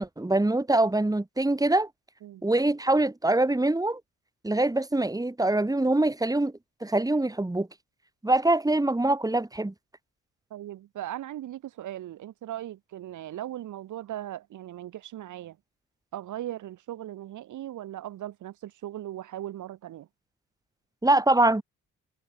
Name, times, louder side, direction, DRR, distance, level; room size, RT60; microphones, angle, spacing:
voice 1, 0.0-1.9 2.4-4.0 4.4-6.5 6.8-7.7 8.2-9.7 21.0-21.6, right 2 dB, 10° right, 6.7 m, -24 dB
voice 2, 10.5-15.6 16.1-20.1, right 13 dB, 75° right, 5.0 m, -38 dB
cardioid pair, 90°, 30 cm